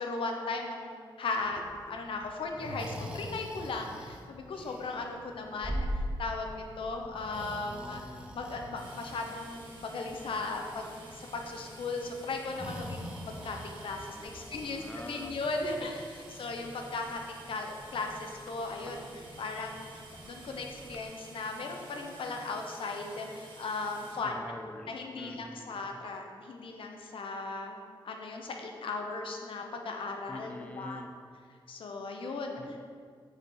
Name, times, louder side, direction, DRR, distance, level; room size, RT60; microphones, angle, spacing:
voice 1, 0.0-5.9 6.2-8.0 8.3-19.9 20.2-24.4 24.9-30.5 30.8-31.0 31.7-32.6, left 3 dB, 80° left, 3 dB, 1.0 m, -37 dB
Breathing, 1.3-21.0, equal, 10° right, 0.9 m, -44 dB
voice 2, 7.6-8.4 14.1-15.4 15.7-15.9 24.2-26.0 30.3-31.1 32.6-32.8, left 1 dB, 15° left, 5 dB, 0.4 m, -46 dB
sound 1, 8.8-24.1, right 2 dB, 60° right, 2.1 m, -51 dB
7.4 x 6.5 x 3.9 m, 2.1 s
wide cardioid pair, 135°, 9 cm